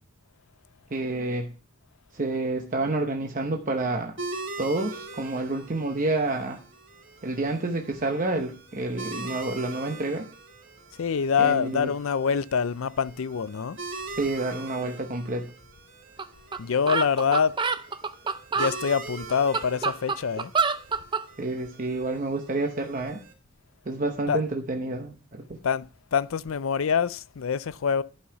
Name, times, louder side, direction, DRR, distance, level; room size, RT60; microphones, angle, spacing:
voice 1, 0.9-1.5 2.1-4.2 4.6-6.6 7.2-10.3 11.4-11.9 14.2-15.5 21.4-23.2 23.9-25.6, right 2 dB, 40° right, 0.9 m, -29 dB
sound 1, 4.2-23.3, right 3 dB, 60° right, 2.3 m, -42 dB
voice 2, 11.0-13.8 16.6-17.5 18.6-20.5 24.3-24.4 25.6-28.0, left 6 dB, 70° left, 0.5 m, -25 dB
sound 2, 16.2-16.3 16.5-16.6 16.9-18.7 19.3-21.2, right 5 dB, 20° right, 0.5 m, -26 dB
11.5 x 5.6 x 5.8 m
head